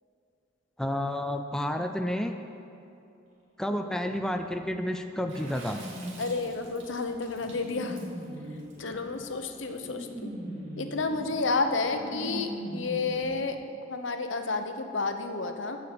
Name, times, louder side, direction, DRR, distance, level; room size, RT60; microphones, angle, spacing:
voice 1, 0.8-2.3 3.6-5.8, left 1 dB, 5° left, 5 dB, 0.4 m, -30 dB
sound 1, 4.1-13.2, equal, 35° right, 3.0 m, -41 dB
Water / Splash splatter, 5.3-9.8, right 3 dB, 75° right, 2.3 m, -49 dB
voice 2, 6.2-8.0 8.8-10.3 10.8-13.6 13.9-15.8, left 3 dB, 70° left, 7 dB, 0.9 m, -31 dB
14.5 x 5.8 x 7.6 m, 2.7 s
head